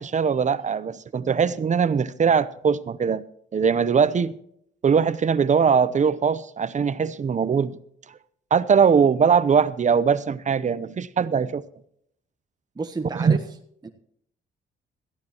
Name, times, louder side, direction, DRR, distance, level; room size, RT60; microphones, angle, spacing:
voice 1, 0.0-3.2 3.5-4.4 4.8-7.8 8.5-11.6 13.1-13.4, right 6 dB, 40° right, 0.7 m, -21 dB
voice 2, 12.7-13.4 13.8-13.9, right 3 dB, 20° right, 1.2 m, -31 dB
17.0 x 14.0 x 3.0 m
cardioid pair, 90°, 20 cm